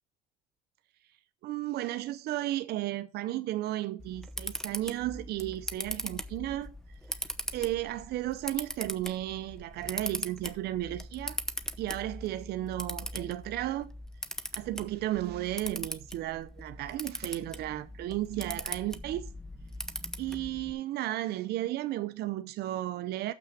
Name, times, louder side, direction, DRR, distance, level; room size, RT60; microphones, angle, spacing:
voice 1, 1.4-6.7 7.1-7.2 7.5-11.4 11.8-13.9 14.5-19.3 20.2-23.3, right 14 dB, 75° right, 0.6 m, -34 dB
Camera, 4.0-20.7, equal, 5° left, 0.8 m, -40 dB
6.9 x 6.1 x 7.2 m
cardioid pair, 110°, 17 cm